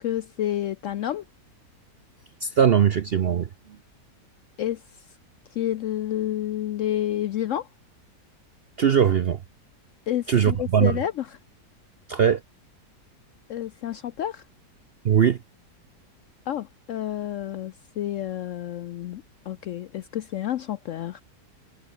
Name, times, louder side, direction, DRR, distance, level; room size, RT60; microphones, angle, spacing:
voice 1, 0.0-1.2 4.6-4.8 5.5-7.7 10.1-11.4 13.5-14.4 16.5-21.2, left 12 dB, 70° left, 0.7 m, -29 dB
voice 2, 2.4-3.5 8.8-9.4 10.3-11.0 12.1-12.4 15.0-15.4, right 8 dB, 60° right, 0.6 m, -20 dB
omnidirectional pair, 1.8 m